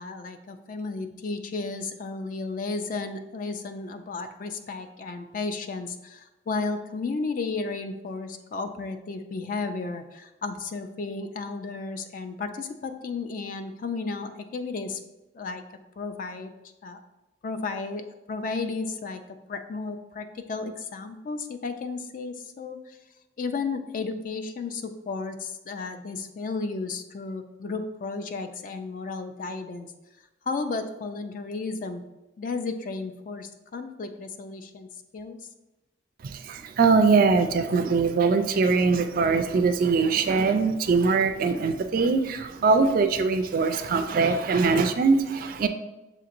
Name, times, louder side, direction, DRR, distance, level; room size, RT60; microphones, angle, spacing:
voice 1, 0.0-15.0 15.3-15.6 16.0-16.5 16.8-17.0 17.4-19.2 19.5-23.0 23.4-29.9 30.5-32.0 32.4-34.9 35.1-35.4, left 4 dB, 45° left, 8 dB, 0.3 m, -33 dB
voice 2, 36.2-45.7, right 4 dB, 45° right, 8 dB, 0.3 m, -22 dB
7.0 x 2.9 x 2.5 m, 1.0 s
head